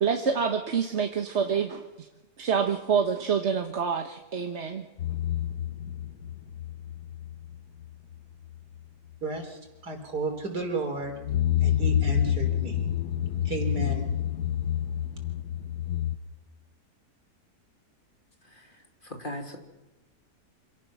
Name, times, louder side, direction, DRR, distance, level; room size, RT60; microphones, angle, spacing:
voice 1, 0.0-1.8 2.4-4.8, right 6 dB, 45° right, 5 dB, 1.4 m, -27 dB
sound 1, 5.0-7.6 7.8-8.2 8.4-8.6 11.1-16.2, left 10 dB, 75° left, 1.5 m, -28 dB
voice 2, 9.2-11.1 11.6-12.9 13.4-14.1, right 3 dB, 75° right, 4 dB, 4.2 m, -33 dB
voice 3, 18.4-19.6, left 1 dB, 30° left, 3 dB, 2.5 m, -40 dB
26.5 x 17.5 x 6.2 m, 1.1 s
omnidirectional pair, 1.7 m